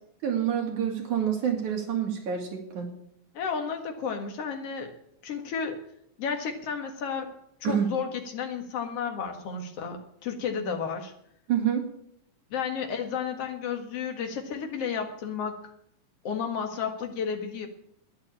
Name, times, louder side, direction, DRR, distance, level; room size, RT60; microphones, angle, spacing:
voice 1, 0.2-2.9 7.6-7.9 11.5-11.9, right 8 dB, 70° right, 1 dB, 4.0 m, -27 dB
voice 2, 3.3-4.9 5.2-5.8 6.2-7.3 7.6-11.1 12.5-15.6 16.2-17.7, left 6 dB, 55° left, 4 dB, 2.6 m, -32 dB
11.5 x 10.5 x 8.7 m, 0.72 s
omnidirectional pair, 3.6 m